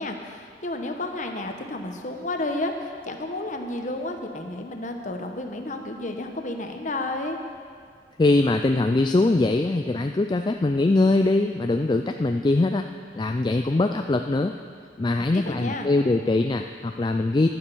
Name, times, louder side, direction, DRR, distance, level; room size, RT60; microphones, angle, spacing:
voice 1, 0.0-7.4 15.3-15.9, left 2 dB, 40° left, 4 dB, 1.1 m, -31 dB
voice 2, 8.2-12.9 13.1-14.5 15.0-17.5, left 2 dB, 25° left, 6 dB, 0.3 m, -22 dB
12.0 x 9.8 x 6.9 m, 2.1 s
head